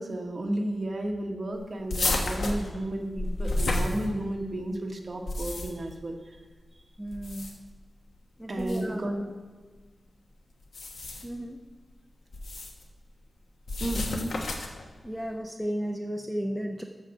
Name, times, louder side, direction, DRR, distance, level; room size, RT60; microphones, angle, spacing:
voice 1, 0.0-6.2 8.5-9.2 13.8-14.3, right 1 dB, 35° right, 1 dB, 1.4 m, -32 dB
sound 1, 1.9-4.5 5.1-5.9 7.1-7.8 8.6-8.8 10.6-11.4 12.3-12.8 13.7-14.8, left 2 dB, 85° left, 1.3 m, -31 dB
voice 2, 7.0-7.6 8.4-9.0 11.2-11.6 15.0-16.8, equal, ahead, 2 dB, 0.6 m, -34 dB
13.5 x 4.8 x 6.5 m, 1.4 s
wide cardioid pair, 130°, 0 cm